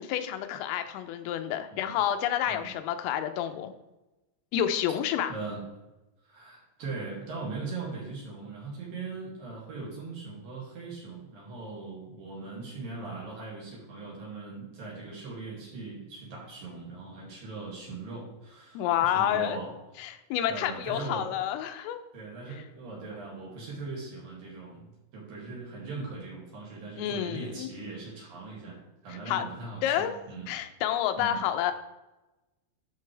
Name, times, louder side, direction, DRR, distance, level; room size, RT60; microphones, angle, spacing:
voice 1, 0.0-3.7 4.5-5.3 18.7-19.6 20.0-22.0 27.0-27.7 29.3-29.4 29.8-30.2 30.5-31.7, left 10 dB, 90° left, 8 dB, 3.4 m, -29 dB
voice 2, 5.3-5.6 6.2-19.7 20.5-21.3 22.1-30.5 31.2-31.4, right 3 dB, 50° right, -4 dB, 3.6 m, -40 dB
12.5 x 5.7 x 3.4 m, 1.0 s
omnidirectional pair, 5.8 m